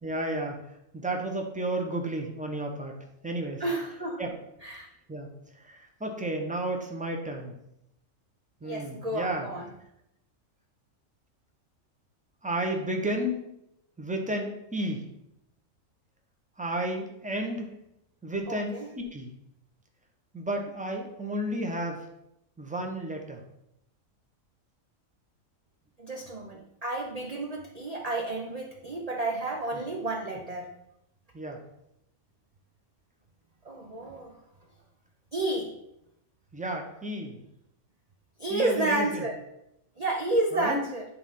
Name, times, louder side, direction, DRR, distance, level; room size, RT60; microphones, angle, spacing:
voice 1, 0.0-0.6 0.9-3.0 3.2-3.6 4.2-4.3 5.1-5.3 5.6-7.5 8.6-9.5 12.4-13.4 14.0-15.0 16.6-17.7 18.2-19.3 20.3-22.1 22.6-23.4 29.7-29.8 31.3-31.6 36.5-37.4 38.5-39.3 40.5-40.8, right 1 dB, 5° right, 2 dB, 1.1 m, -32 dB
voice 2, 3.6-4.3 4.6-4.9 8.6-9.6 18.5-18.9 26.0-30.7 33.6-34.3 35.3-35.7 38.4-39.3 40.0-41.0, right 2 dB, 35° right, 1 dB, 0.8 m, -31 dB
10.0 x 3.8 x 5.6 m, 0.81 s
omnidirectional pair, 1.4 m